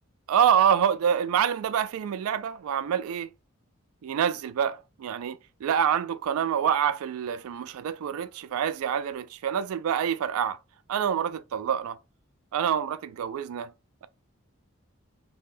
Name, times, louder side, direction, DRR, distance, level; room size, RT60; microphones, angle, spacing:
voice 1, 0.3-3.3 4.0-10.6 10.9-12.0 12.5-13.7, right 8 dB, 75° right, 0.3 m, -26 dB
2.5 x 2.2 x 3.2 m
head